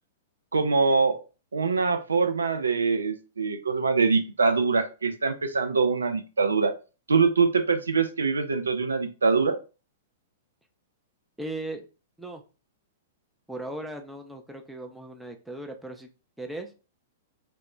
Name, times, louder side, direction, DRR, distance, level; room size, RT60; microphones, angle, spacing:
voice 1, 0.5-1.2 1.5-6.7 7.1-9.6, right 4 dB, 85° right, 8 dB, 0.3 m, -24 dB
voice 2, 11.4-11.8 12.2-12.4 13.5-16.1 16.4-16.7, right 1 dB, 5° right, 4 dB, 0.4 m, -37 dB
2.0 x 2.0 x 3.6 m, 0.33 s
hypercardioid pair, 110°, 0 cm